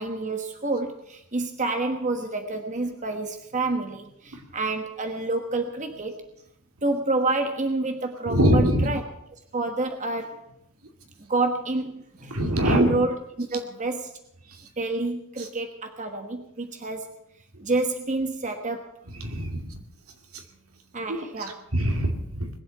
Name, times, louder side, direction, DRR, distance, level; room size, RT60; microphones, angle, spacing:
voice 1, 0.0-6.2 6.8-9.0 9.5-10.5 11.3-14.1 14.8-17.1 17.6-18.9 20.9-21.6, right 2 dB, 35° right, 5 dB, 1.3 m, -28 dB
voice 2, 8.3-8.9 12.3-13.0 19.2-19.6 21.7-22.5, equal, 75° right, 4 dB, 2.5 m, -22 dB
21.0 x 7.8 x 8.8 m, 0.78 s
head